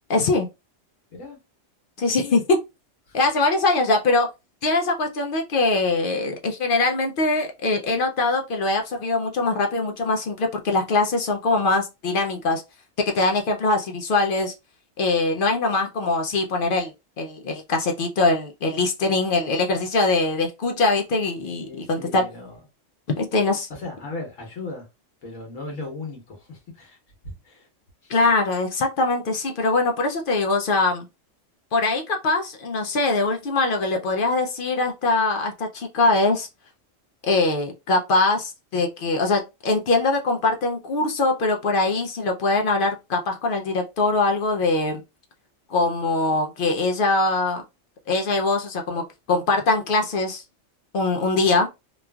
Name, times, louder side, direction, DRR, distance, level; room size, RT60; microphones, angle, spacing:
voice 1, 0.1-0.5 2.0-2.6 3.1-4.3 4.6-12.6 13.0-14.5 15.0-16.9 17.2-22.2 23.1-23.7 28.1-31.1 31.7-36.5 37.2-45.0 45.7-47.6 48.1-50.4 50.9-51.7, left 3 dB, 65° left, 0.5 m, -22 dB
voice 2, 21.4-22.6 23.3-24.9 25.2-27.0 27.2-27.7 28.0-28.1, left 3 dB, 90° left, 1.3 m, -37 dB
3.0 x 2.4 x 2.2 m
omnidirectional pair, 1.3 m